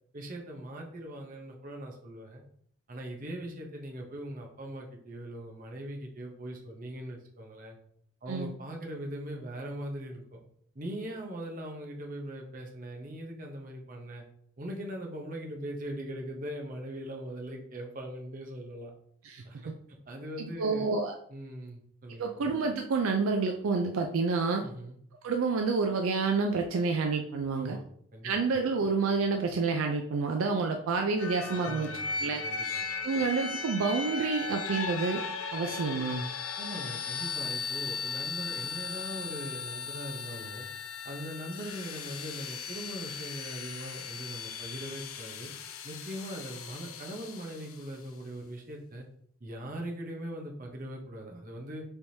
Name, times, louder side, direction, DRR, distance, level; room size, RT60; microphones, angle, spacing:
voice 1, 0.1-2.4 2.9-7.8 8.2-10.4 10.7-14.2 14.6-18.9 19.4-19.7 20.1-20.9 21.3-22.4 24.6-25.0 27.5-27.8 28.1-28.3 31.6-32.2 32.4-32.8 36.6-40.7 41.0-45.5 45.8-49.1 49.4-51.8, right 1 dB, 40° right, 1 dB, 0.8 m, -40 dB
voice 2, 19.2-19.7 20.4-21.1 22.2-24.7 25.2-27.8 28.2-31.9 32.2-32.4 33.0-35.2 35.5-36.2, right 4 dB, 75° right, 4 dB, 0.4 m, -29 dB
sound 1, 31.2-47.9, left 5 dB, 85° left, 0.5 m, -37 dB
4.5 x 3.4 x 2.7 m, 0.64 s
head